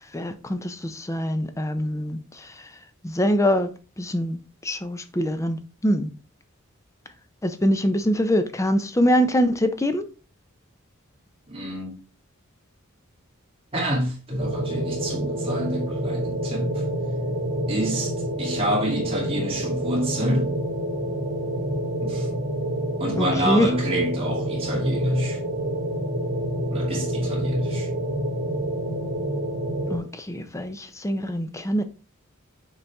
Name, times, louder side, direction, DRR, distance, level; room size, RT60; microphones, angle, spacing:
voice 1, 0.1-2.2 3.0-3.7 4.0-6.1 7.4-10.1 23.2-23.7 29.9-31.8, equal, 15° left, 0.6 m, -24 dB
voice 2, 11.5-11.9 13.7-16.8 17.7-20.6 22.0-22.3 23.0-25.4 26.7-27.9, right 1 dB, 25° right, 2.7 m, -27 dB
sound 1, 14.4-30.0, right 1 dB, 60° right, 2.6 m, -28 dB
6.9 x 4.0 x 3.5 m
head